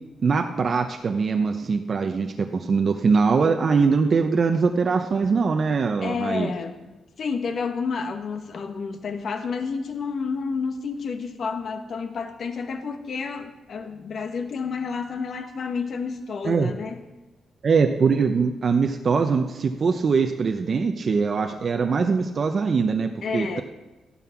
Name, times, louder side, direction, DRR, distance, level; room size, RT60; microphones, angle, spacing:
voice 1, 0.2-6.5 16.4-16.7 17.6-23.6, right 5 dB, 45° right, 5 dB, 0.9 m, -22 dB
voice 2, 6.0-6.9 7.2-17.0 23.2-23.6, left 5 dB, 60° left, 6 dB, 1.6 m, -30 dB
14.0 x 11.0 x 5.9 m, 1.1 s
cardioid pair, 110°, 0 cm